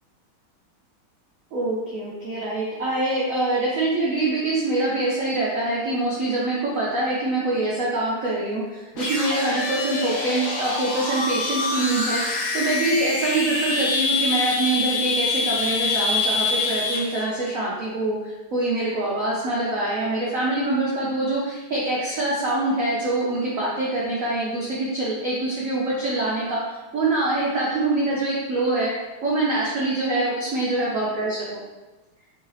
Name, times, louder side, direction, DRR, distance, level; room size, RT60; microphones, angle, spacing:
voice 1, 1.5-12.2 12.5-28.9 29.2-31.6, right 2 dB, 85° right, -5 dB, 0.7 m, -24 dB
sound 1, 8.9-17.2, left 3 dB, 70° left, 0.8 m, -25 dB
3.6 x 3.1 x 3.2 m, 1.1 s
omnidirectional pair, 2.3 m